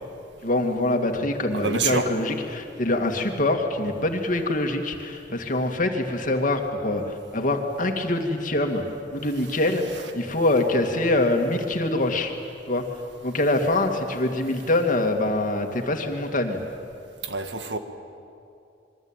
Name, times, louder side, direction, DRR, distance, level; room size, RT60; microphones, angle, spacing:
voice 1, 0.4-8.8 9.1-12.3 12.7-12.9 13.2-16.6, left 2 dB, 45° left, 4 dB, 2.4 m, -24 dB
voice 2, 1.5-2.1 17.2-17.8, right 4 dB, 75° right, 7 dB, 1.8 m, -27 dB
27.0 x 22.5 x 9.1 m, 2.6 s
head